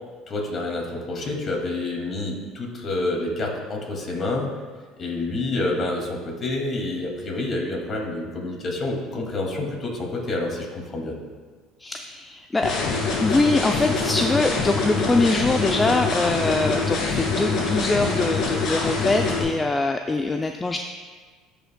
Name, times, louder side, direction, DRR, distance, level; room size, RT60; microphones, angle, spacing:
voice 1, 0.3-4.5 5.0-11.1, left 2 dB, 40° left, 0 dB, 2.1 m, -28 dB
voice 2, 11.8-12.7 13.2-20.8, left 2 dB, 20° left, 5 dB, 0.4 m, -23 dB
sound 1, 12.6-19.4, left 4 dB, 60° left, 2.3 m, -24 dB
14.5 x 5.4 x 2.2 m, 1.5 s
supercardioid pair, 85°, 0 cm